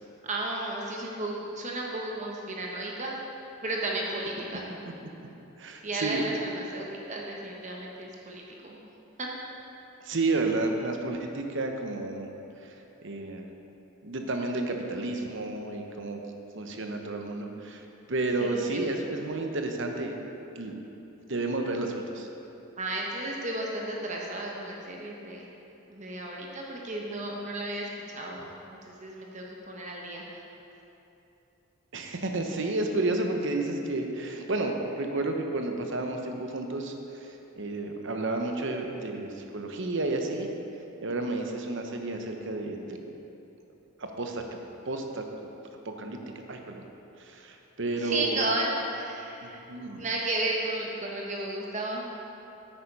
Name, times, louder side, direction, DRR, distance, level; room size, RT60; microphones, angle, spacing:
voice 1, 0.2-3.2 3.6-4.7 5.8-8.8 9.2-9.3 18.4-19.1 22.8-25.5 25.9-30.3 33.0-33.1 48.0-49.6 49.9-52.0, right 2 dB, 35° right, -1 dB, 1.0 m, -33 dB
voice 2, 5.6-6.2 10.0-12.3 12.6-12.7 13.0-13.4 14.0-16.2 16.5-17.8 18.1-20.1 20.5-20.7 21.3-22.3 31.9-36.9 37.2-40.5 41.0-43.0 44.0-44.4 44.9-45.3 45.8-46.2 46.5-46.8 47.2-48.4 49.4-50.0, right 2 dB, 60° right, 4 dB, 1.0 m, -31 dB
9.2 x 8.9 x 5.4 m, 3.0 s
head